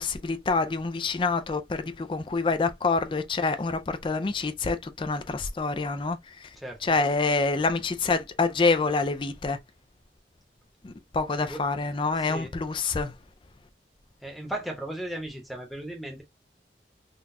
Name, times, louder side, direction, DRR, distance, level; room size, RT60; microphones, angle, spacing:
voice 1, 0.0-6.6 6.8-9.6 10.8-13.1, left 3 dB, 30° left, 0.4 m, -27 dB
voice 2, 6.6-6.9 11.4-11.6 12.2-12.5 14.2-16.2, right 1 dB, ahead, 0.9 m, -36 dB
3.9 x 2.3 x 2.6 m
head